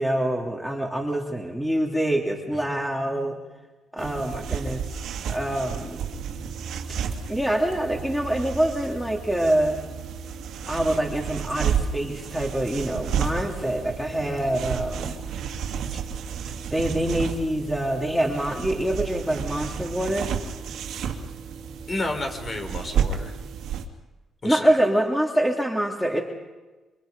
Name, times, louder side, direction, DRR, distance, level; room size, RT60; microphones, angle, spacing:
voice 1, 0.0-3.4 3.9-4.8 5.3-6.0 7.3-9.8 10.7-15.2 16.7-20.3 24.4-26.2, right 1 dB, ahead, 1 dB, 2.6 m, -25 dB
sound 1, 4.0-23.8, right 7 dB, 80° right, 2.4 m, -31 dB
voice 2, 21.9-23.4 24.4-24.7, left 2 dB, 35° left, 5 dB, 3.6 m, -31 dB
29.0 x 24.5 x 5.2 m, 1.2 s
cardioid pair, 105°, 0 cm